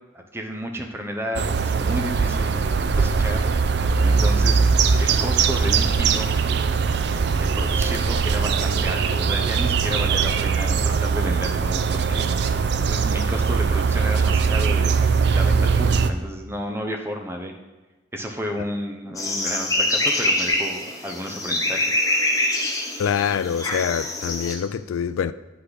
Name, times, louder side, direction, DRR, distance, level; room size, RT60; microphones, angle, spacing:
voice 1, 0.1-2.6 2.9-3.8 4.0-4.6 5.0-6.3 7.3-12.6 12.9-15.0 15.3-17.5 18.1-22.0, equal, 10° right, 0.7 m, -32 dB
sound 1, 1.4-16.1, right 5 dB, 55° right, 0.4 m, -21 dB
sound 2, 19.2-24.6, left 1 dB, 15° left, 0.9 m, -24 dB
voice 2, 23.0-25.3, left 7 dB, 90° left, 0.3 m, -25 dB
9.7 x 5.7 x 4.0 m
head